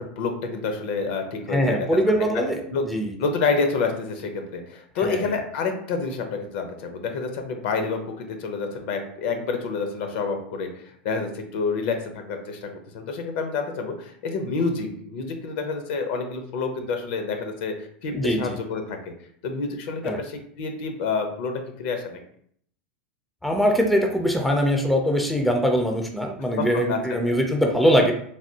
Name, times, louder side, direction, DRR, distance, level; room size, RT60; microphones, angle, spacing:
voice 1, 0.0-2.0 2.3-2.8 3.2-10.7 11.0-19.1 19.4-22.2 26.6-27.0, left 4 dB, 65° left, 5 dB, 0.6 m, -28 dB
voice 2, 1.5-3.1 5.0-5.3 18.1-18.6 20.0-20.2 23.4-28.1, equal, ahead, 2 dB, 0.4 m, -22 dB
3.3 x 2.3 x 2.7 m, 0.64 s
supercardioid pair, 120°, 6 cm